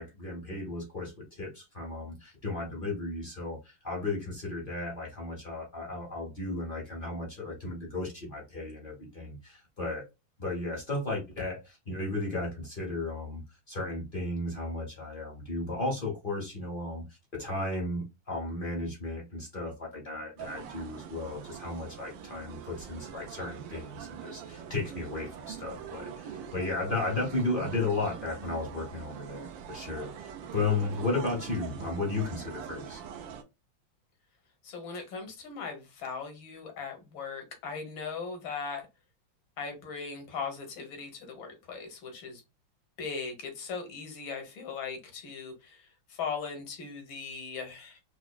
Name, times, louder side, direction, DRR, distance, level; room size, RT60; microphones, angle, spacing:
voice 1, 0.0-10.1 10.4-33.0, left 2 dB, 40° left, 0.8 m, -34 dB
sound 1, 20.4-33.4, right 8 dB, 80° right, 1.3 m, -43 dB
voice 2, 34.6-38.9 39.6-42.4 43.0-48.0, left 5 dB, 80° left, 1.9 m, -39 dB
4.8 x 2.1 x 2.3 m
omnidirectional pair, 2.1 m